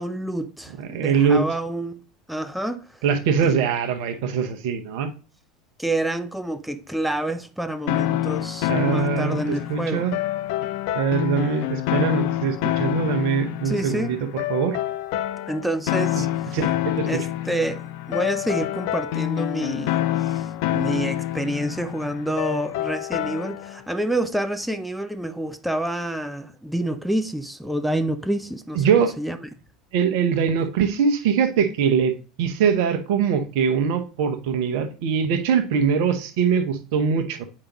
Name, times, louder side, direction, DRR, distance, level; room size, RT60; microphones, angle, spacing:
voice 1, 0.0-2.0 2.3-3.0 3.4-3.6 5.8-10.1 13.6-14.2 15.5-16.6 17.1-28.9 29.2-29.4, right 1 dB, ahead, 0.5 m, -28 dB
voice 2, 0.8-1.4 3.0-5.1 8.7-10.1 10.9-14.8 16.2-16.3 16.5-17.2 28.7-29.1 29.9-37.4, right 6 dB, 55° right, 0.9 m, -22 dB
sound 1, 7.9-23.8, left 14 dB, 50° left, 0.4 m, -27 dB
8.6 x 5.0 x 3.0 m
figure-of-eight pair, 75°, 3 cm